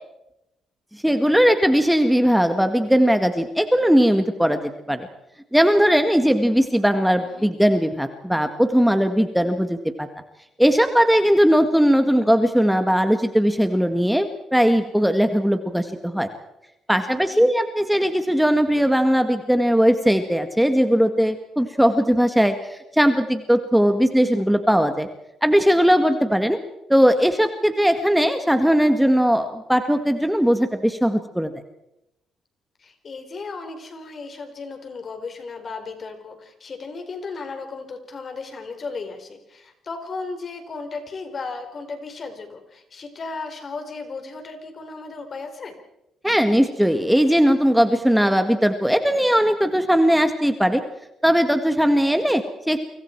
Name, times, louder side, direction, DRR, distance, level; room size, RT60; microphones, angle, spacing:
voice 1, 0.9-5.1 5.5-10.1 10.6-16.3 16.9-25.1 25.4-26.6 26.9-31.5 46.2-50.8 51.2-52.8, equal, ahead, 7 dB, 1.8 m, -19 dB
voice 2, 7.1-7.5 17.1-17.5 32.8-45.8, left 4 dB, 45° left, 6 dB, 4.4 m, -35 dB
29.5 x 25.0 x 4.6 m, 0.87 s
cardioid pair, 90°, 0 cm